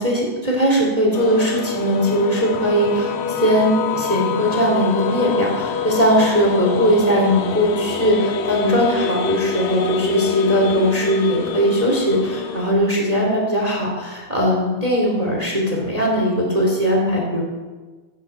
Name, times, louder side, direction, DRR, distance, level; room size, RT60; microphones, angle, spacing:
voice 1, 0.0-17.4, equal, 10° right, -2 dB, 1.9 m, -19 dB
sound 1, 1.1-12.7, left 6 dB, 85° left, 3.6 m, -26 dB
14.5 x 9.6 x 6.0 m, 1.3 s
omnidirectional pair, 5.4 m